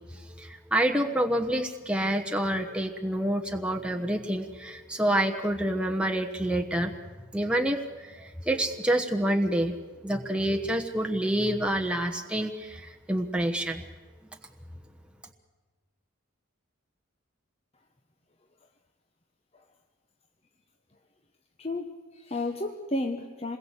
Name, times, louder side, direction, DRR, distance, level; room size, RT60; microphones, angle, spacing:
voice 1, 0.1-6.9 7.3-9.8 10.0-13.8, right 1 dB, 5° right, 3 dB, 1.1 m, -28 dB
voice 2, 21.6-23.6, left 2 dB, 30° left, 4 dB, 1.2 m, -32 dB
27.5 x 21.0 x 8.2 m, 1.4 s
head